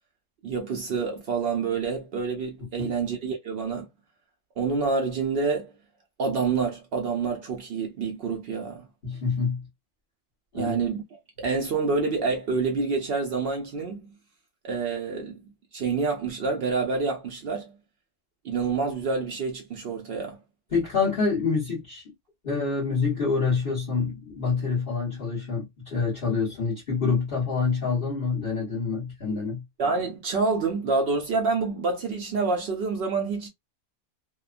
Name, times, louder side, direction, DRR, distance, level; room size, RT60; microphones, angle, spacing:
voice 1, 0.4-3.9 4.6-5.7 6.2-8.9 10.5-11.0 11.4-14.1 14.6-15.4 15.7-17.7 18.4-20.4 29.8-33.5, right 4 dB, 70° right, 0.5 m, -27 dB
voice 2, 9.0-9.7 10.5-10.8 20.7-22.0 22.4-29.6, left 5 dB, 40° left, 1.2 m, -26 dB
2.9 x 2.1 x 2.4 m
omnidirectional pair, 1.5 m